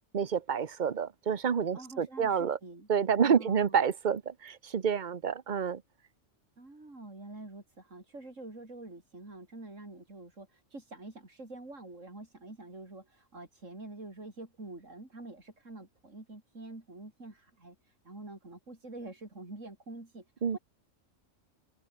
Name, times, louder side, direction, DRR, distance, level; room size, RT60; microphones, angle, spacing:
voice 1, 0.1-2.6 2.9-5.8 20.4-20.6, right 7 dB, 40° right, 1.0 m, -28 dB
voice 2, 1.7-2.9 3.2-3.8 6.6-20.3 20.5-20.6, right 2 dB, 80° right, 5.4 m, -47 dB
omnidirectional pair, 1.3 m